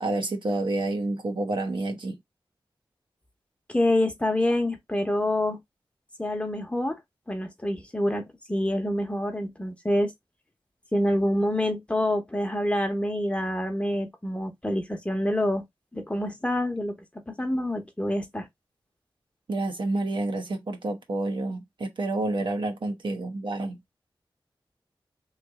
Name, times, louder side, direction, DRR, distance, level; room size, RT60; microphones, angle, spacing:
voice 1, 0.0-2.2 19.5-23.8, right 2 dB, 65° right, 0.9 m, -29 dB
voice 2, 3.7-5.6 6.2-7.0 7.3-8.2 8.5-10.1 10.9-15.6 15.9-16.9 17.3-18.5, left 1 dB, 15° left, 0.9 m, -26 dB
3.2 x 2.5 x 3.5 m
wide cardioid pair, 65°, 9 cm